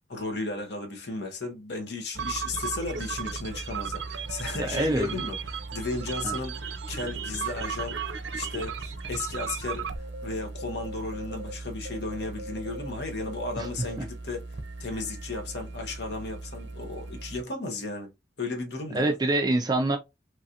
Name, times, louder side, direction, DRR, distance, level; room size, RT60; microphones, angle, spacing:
voice 1, 0.1-8.0 8.3-14.4 14.8-18.1 18.4-19.1, left 3 dB, 65° left, 0.8 m, -35 dB
sound 1, 2.1-17.4, right 5 dB, 75° right, 0.5 m, -36 dB
voice 2, 4.6-5.2 6.2-6.3 13.6-13.7 18.9-20.0, right 2 dB, 20° right, 0.3 m, -25 dB
3.1 x 2.4 x 2.7 m
head